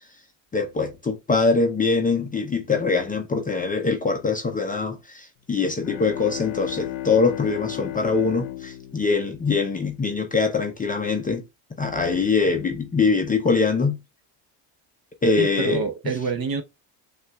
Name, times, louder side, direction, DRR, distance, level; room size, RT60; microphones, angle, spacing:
voice 1, 0.5-11.4 11.8-14.0 15.2-15.8, left 4 dB, 20° left, 0.5 m, -23 dB
Bowed string instrument, 5.8-10.4, left 15 dB, 75° left, 0.8 m, -35 dB
voice 2, 15.4-16.6, right 5 dB, 45° right, 0.8 m, -26 dB
6.3 x 2.5 x 2.2 m
cardioid pair, 105°, 49 cm